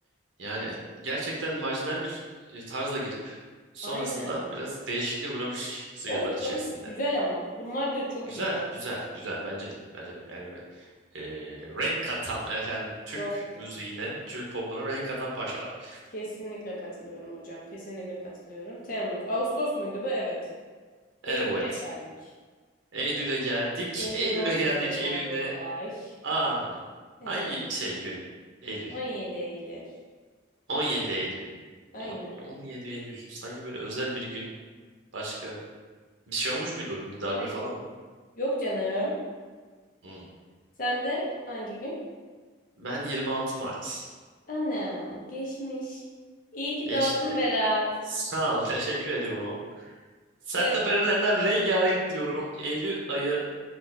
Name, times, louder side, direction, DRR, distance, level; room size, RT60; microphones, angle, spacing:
voice 1, 0.4-0.7 1.0-2.2 2.5-3.4 3.7-6.8 8.3-10.9 11.1-16.0 21.2-21.8 22.9-25.6 26.2-26.8 27.3-28.2 28.6-29.0 30.7-31.4 32.0-34.5 35.1-35.6 36.3-37.7 40.0-40.2 42.8-44.1 46.9-47.3 48.1-49.9 50.5-53.4, right 1 dB, 85° right, -3 dB, 0.7 m, -31 dB
voice 2, 3.8-4.3 6.1-8.9 13.1-13.7 16.1-20.4 21.3-22.0 24.0-26.1 27.2-27.6 28.9-29.8 31.9-32.4 37.4-37.6 38.4-39.2 40.8-42.0 44.5-46.0 46.5-47.8 50.6-50.8, equal, 45° left, -5 dB, 0.7 m, -32 dB
2.7 x 2.4 x 3.9 m, 1.4 s
head